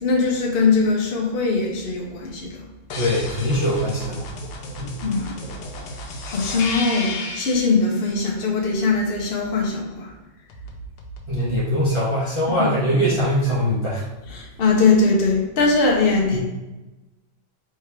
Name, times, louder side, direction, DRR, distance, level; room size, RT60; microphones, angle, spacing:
voice 1, 0.0-2.6 5.0-5.3 6.2-10.1 14.3-16.4, left 3 dB, 45° left, -2 dB, 0.8 m, -21 dB
sound 1, 2.9-7.7 10.5-11.6, left 2 dB, 85° left, 1.4 m, -33 dB
voice 2, 2.9-4.2 4.8-4.9 11.3-14.0, equal, 20° right, -7 dB, 1.0 m, -22 dB
3.5 x 3.4 x 4.5 m, 1.1 s
omnidirectional pair, 1.8 m